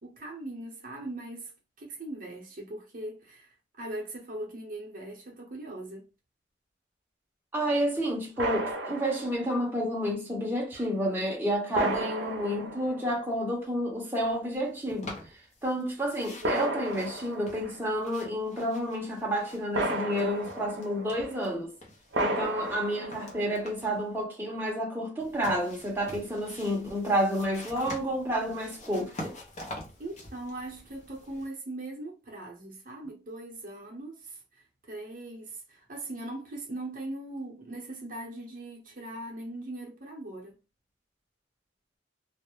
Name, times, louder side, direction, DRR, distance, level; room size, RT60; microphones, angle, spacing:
voice 1, 0.0-6.1 30.0-40.6, right 1 dB, 50° right, 0.7 m, -40 dB
voice 2, 7.5-15.2 15.6-21.7 22.2-29.3, equal, 10° right, 0.7 m, -30 dB
sound 1, 8.4-9.6 10.7-10.8 11.7-13.4 14.3-14.4 16.4-17.9 19.7-21.4 22.1-23.6, right 1 dB, 85° right, 0.5 m, -33 dB
sound 2, 14.9-15.8 16.1-19.9 20.1-21.5 21.8-24.0 25.2-31.5, left 1 dB, 40° left, 0.6 m, -46 dB
2.3 x 2.0 x 2.9 m
head